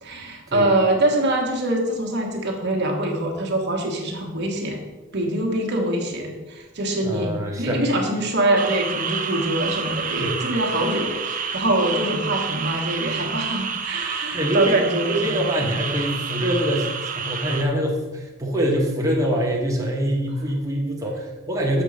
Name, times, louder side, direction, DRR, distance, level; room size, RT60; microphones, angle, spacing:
voice 1, 0.0-4.8 5.1-7.3 7.6-15.3, right 1 dB, 55° right, 1 dB, 1.3 m, -24 dB
voice 2, 7.0-7.8 10.2-10.4 14.3-14.8 15.1-21.8, equal, 15° right, -2 dB, 1.2 m, -24 dB
sound 1, 8.6-17.6, right 6 dB, 40° right, 0.7 m, -29 dB
6.9 x 4.5 x 6.3 m, 1.2 s
head